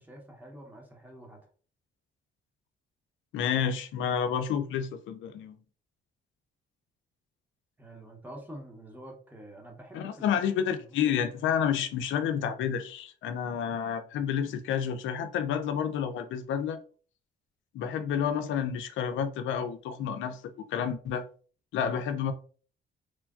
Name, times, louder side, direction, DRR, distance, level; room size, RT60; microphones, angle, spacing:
voice 1, 0.0-1.4 7.8-10.3 10.7-11.1, right 1 dB, 10° right, 0.9 m, -47 dB
voice 2, 3.3-5.6 9.9-16.8 17.7-20.4 20.7-21.2 21.7-22.3, left 8 dB, 75° left, 0.4 m, -30 dB
3.1 x 2.2 x 2.4 m
cardioid pair, 90°, 20 cm